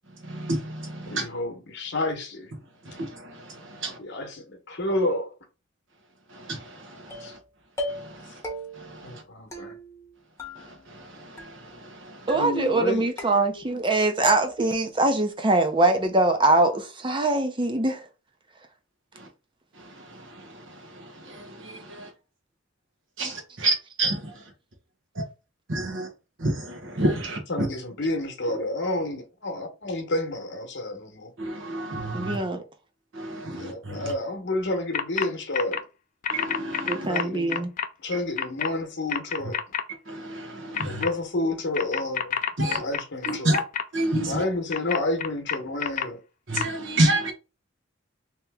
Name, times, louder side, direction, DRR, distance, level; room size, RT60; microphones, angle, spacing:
voice 1, 0.2-1.3 2.8-4.0 6.3-7.3 7.9-8.4 8.8-9.1 10.6-12.3 19.2-19.3 19.8-22.1 23.2-24.3 25.2-25.3 25.7-26.1 26.4-27.7 31.4-32.4 33.1-34.1 36.3-37.1 40.1-41.0 42.6-42.8 43.2-43.6 43.9-44.4 46.5-47.3, right 1 dB, 75° right, 1.2 m, -30 dB
voice 2, 1.1-2.5 3.8-5.3 7.2-7.3 9.0-9.7 12.3-13.1 27.5-31.3 33.5-35.8 37.1-37.6 38.0-39.6 40.8-42.3 42.6-43.6 44.3-46.2, left 1 dB, 65° left, 1.0 m, -30 dB
sound 1, 7.1-7.4 7.8-8.2 8.4-9.0 9.5-10.1 10.4-11.1 11.4-11.9 12.3-12.8 13.2-13.9 14.2-14.8, left 1 dB, 15° left, 0.9 m, -37 dB
voice 3, 12.3-18.1 23.2-23.3 32.1-32.6 36.8-37.7, right 2 dB, 25° right, 0.6 m, -23 dB
sound 2, 34.9-35.3 35.5-35.8 36.2-37.9 38.4-38.7 39.1-39.8 40.7-41.1 41.7-43.8 44.7-46.0 46.6-46.7, left 8 dB, 40° left, 0.3 m, -27 dB
3.0 x 2.9 x 3.5 m
head